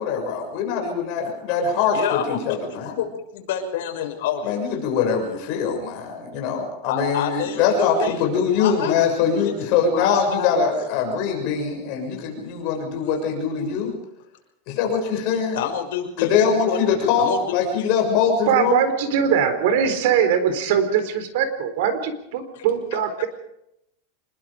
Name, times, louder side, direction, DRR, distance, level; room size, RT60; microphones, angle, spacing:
voice 1, 0.0-2.9 4.4-13.9 14.7-15.6 16.2-18.8, left 6 dB, 45° left, 2 dB, 6.7 m, -22 dB
voice 2, 1.9-4.6 6.9-8.3 8.6-9.0 9.4-9.5 9.9-10.6 15.5-16.8 17.2-17.9 22.5-22.6 22.9-23.0, left 8 dB, 70° left, 3 dB, 6.4 m, -28 dB
voice 3, 18.5-23.3, right 8 dB, 60° right, 10 dB, 4.1 m, -21 dB
27.0 x 21.5 x 5.1 m, 0.81 s
supercardioid pair, 165°, 0 cm